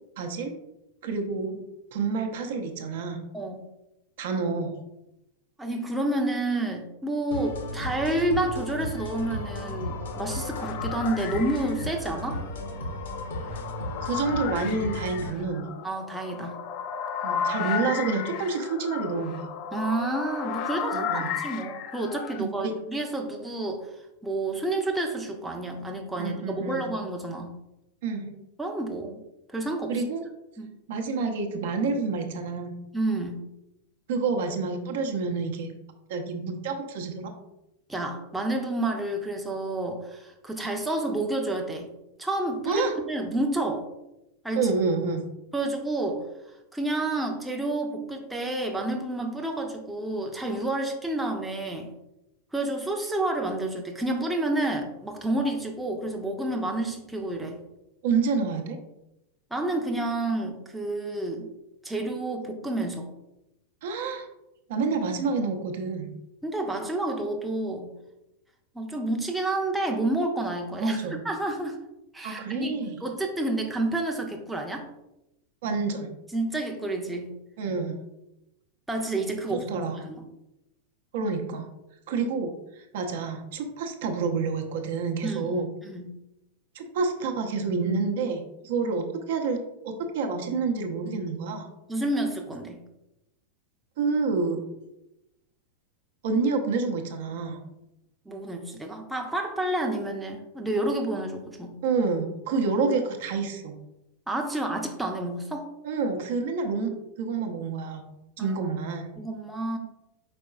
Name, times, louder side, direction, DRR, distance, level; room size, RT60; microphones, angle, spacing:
voice 1, 0.2-0.5 1.0-1.6 1.9-3.2 4.2-4.7 14.0-15.7 17.2-19.5 20.9-21.4 22.4-22.7 26.2-26.9 28.0-28.3 29.9-30.2 30.9-32.7 34.1-35.7 36.1-37.3 42.7-42.9 44.6-45.2 58.0-58.8 63.8-64.3 64.7-66.2 70.8-71.2 72.2-73.0 75.6-76.2 77.6-78.0 79.5-80.0 81.1-81.7 82.1-85.7 86.7-91.7 94.0-94.6 96.2-97.6 101.8-103.8 105.8-106.9 107.2-108.0 108.4-109.1, right 4 dB, 55° right, 3 dB, 0.7 m, -28 dB
voice 2, 5.6-12.4 15.8-16.6 19.7-23.9 24.2-27.5 28.6-29.2 29.5-30.0 30.6-30.7 32.9-33.4 37.9-41.9 42.2-43.9 44.4-44.7 45.5-46.2 46.7-51.9 52.5-57.6 59.5-61.5 61.8-63.1 66.4-67.9 68.7-71.8 72.1-72.7 73.0-74.9 76.3-77.3 78.9-80.2 85.2-86.1 91.9-92.8 98.3-101.8 104.3-105.7 108.4-108.5 109.2-109.8, right 2 dB, 5° right, 1 dB, 0.6 m, -29 dB
sound 1, 7.3-15.3, left 1 dB, 60° left, 0.8 m, -35 dB
sound 2, 9.0-22.4, left 7 dB, 40° left, 0.4 m, -35 dB
5.1 x 4.5 x 2.3 m, 0.90 s
figure-of-eight pair, 90°, 0 cm